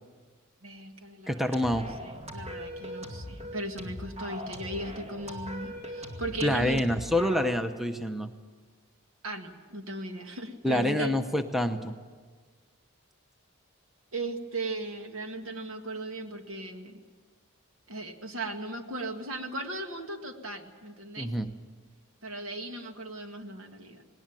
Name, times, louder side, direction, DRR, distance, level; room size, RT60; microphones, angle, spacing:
voice 1, 0.6-6.8 9.2-11.1 14.1-17.0 17.9-21.3 22.2-24.0, right 2 dB, 75° right, 5 dB, 2.0 m, -37 dB
voice 2, 1.3-1.8 6.4-8.3 10.6-11.9 21.2-21.5, left 1 dB, ahead, 7 dB, 0.8 m, -27 dB
sound 1, 1.5-7.5, equal, 30° right, 2.3 m, -40 dB
19.5 x 18.5 x 9.1 m, 1.5 s
head